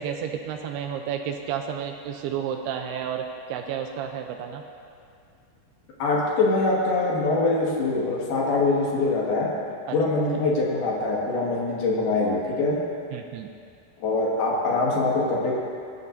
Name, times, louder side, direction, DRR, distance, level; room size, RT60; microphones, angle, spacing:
voice 1, 0.0-4.6 9.9-10.0 13.1-13.5, right 8 dB, 80° right, 4 dB, 2.4 m, -31 dB
voice 2, 6.0-9.5 9.9-12.8 14.0-15.5, left 3 dB, 65° left, -4 dB, 3.6 m, -23 dB
19.0 x 11.0 x 2.6 m, 2.4 s
omnidirectional pair, 5.0 m